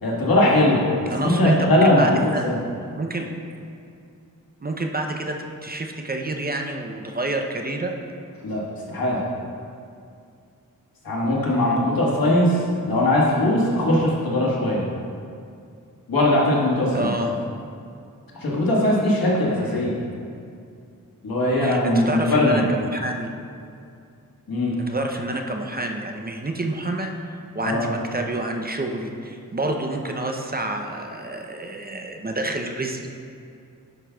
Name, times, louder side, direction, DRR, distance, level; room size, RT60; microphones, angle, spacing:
voice 1, 0.0-2.6 8.4-8.6 8.9-9.2 11.0-14.8 16.1-17.1 18.4-20.0 21.2-22.6 24.5-24.8 27.6-27.9, left 1 dB, 80° left, -5 dB, 1.6 m, -20 dB
voice 2, 1.1-2.5 3.0-3.3 4.6-5.4 5.6-7.9 11.5-11.8 16.9-17.3 19.5-19.8 21.6-23.3 24.8-27.2 27.5-33.1, right 2 dB, 25° right, 3 dB, 0.6 m, -28 dB
11.0 x 5.8 x 2.3 m, 2.5 s
cardioid pair, 65°, 35 cm